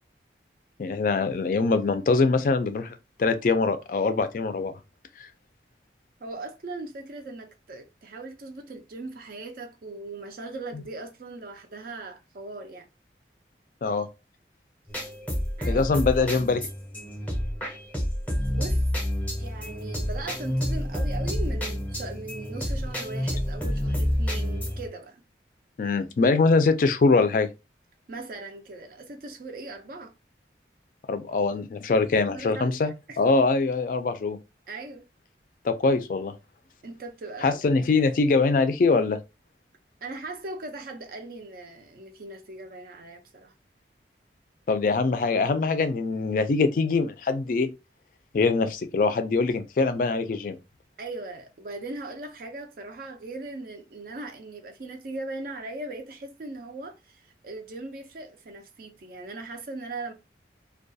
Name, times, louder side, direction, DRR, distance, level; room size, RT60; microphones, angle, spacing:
voice 1, 0.8-4.7 5.2-5.3 10.7-10.8 13.8-14.1 15.7-16.6 25.8-27.5 31.1-34.4 35.6-36.3 37.4-39.2 44.7-47.7 48.3-50.6, left 4 dB, 50° left, 0.3 m, -23 dB
voice 2, 6.2-12.9 15.6-15.8 18.3-18.9 19.4-25.2 28.1-30.1 32.3-33.4 34.7-35.0 36.8-37.7 40.0-43.5 51.0-60.1, right 2 dB, 50° right, 0.4 m, -39 dB
sound 1, 14.9-24.9, equal, 10° left, 0.6 m, -29 dB
2.3 x 2.2 x 2.6 m
head